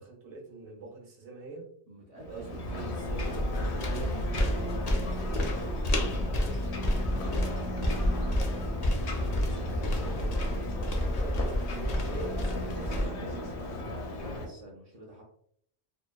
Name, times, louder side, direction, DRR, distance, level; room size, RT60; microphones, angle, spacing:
voice 1, 0.0-1.7 2.3-3.6 9.2-13.5, right 3 dB, 90° right, -2 dB, 1.0 m, -44 dB
voice 2, 1.9-2.6 3.6-7.4 13.7-15.2, right 1 dB, 50° right, -4 dB, 0.5 m, -46 dB
Ocean, 2.2-14.5, left 1 dB, 80° left, 0.9 m, -36 dB
sound 1, 3.1-13.1, left 1 dB, 55° left, 0.4 m, -30 dB
2.8 x 2.0 x 2.2 m, 0.65 s
omnidirectional pair, 1.1 m